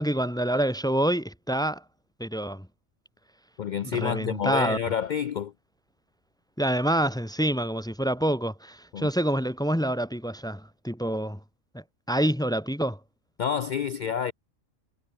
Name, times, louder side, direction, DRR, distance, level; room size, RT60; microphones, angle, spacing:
voice 1, 0.0-1.8 2.2-2.7 3.8-4.8 6.6-11.4 11.7-13.0, right 1 dB, 5° left, 0.8 m, -27 dB
voice 2, 3.6-5.5 8.9-9.1 13.4-14.3, left 8 dB, 90° left, 0.4 m, -28 dB
omnidirectional pair, 1.3 m